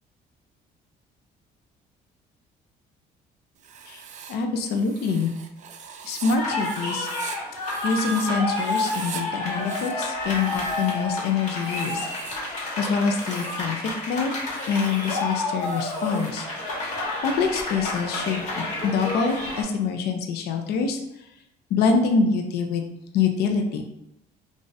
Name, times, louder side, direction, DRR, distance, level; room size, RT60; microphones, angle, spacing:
Writing, 3.6-8.3 8.5-9.2 9.5-11.1 11.5-12.5 13.0-13.7 14.4-16.4, right 7 dB, 45° right, 0.4 m, -42 dB
voice 1, 4.3-5.3 6.0-7.1 7.8-12.1 12.5-13.8 14.1-14.3 14.7-16.5 17.2-21.0 21.7-22.8 23.1-23.8, left 5 dB, 70° left, 4 dB, 0.5 m, -25 dB
sound 1, 6.4-19.6, left 2 dB, 45° left, 1.1 m, -30 dB
2.5 x 2.4 x 3.9 m, 0.83 s
cardioid pair, 110°, 17 cm